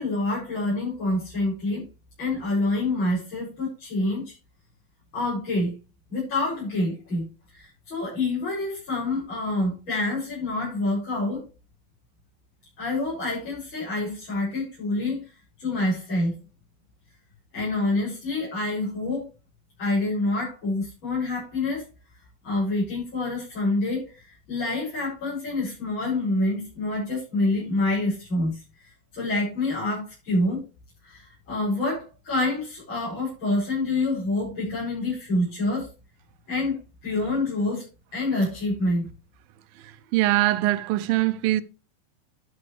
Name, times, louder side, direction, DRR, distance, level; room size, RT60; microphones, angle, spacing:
voice 1, 0.0-1.8 2.2-4.3 5.1-5.8 6.1-7.3 7.5-11.4 12.8-15.3 15.6-16.4 17.5-19.3 19.8-21.9 22.4-28.6 29.1-30.6 31.0-35.9 36.5-39.1, left 2 dB, 35° left, 7.9 m, -27 dB
voice 2, 40.1-41.6, right 16 dB, 85° right, 2.5 m, -22 dB
11.5 x 9.8 x 3.3 m
omnidirectional pair, 4.0 m